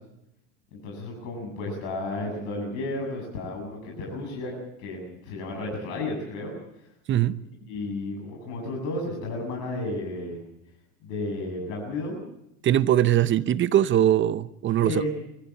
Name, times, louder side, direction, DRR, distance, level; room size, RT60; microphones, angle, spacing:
voice 1, 0.7-4.5 4.8-6.5 7.7-10.4 11.0-12.2 14.7-15.1, left 2 dB, 65° left, 7.9 m, -32 dB
voice 2, 7.1-7.4 12.6-15.0, right 11 dB, 25° right, 0.9 m, -21 dB
23.0 x 15.0 x 8.6 m
hypercardioid pair, 110°, 43 cm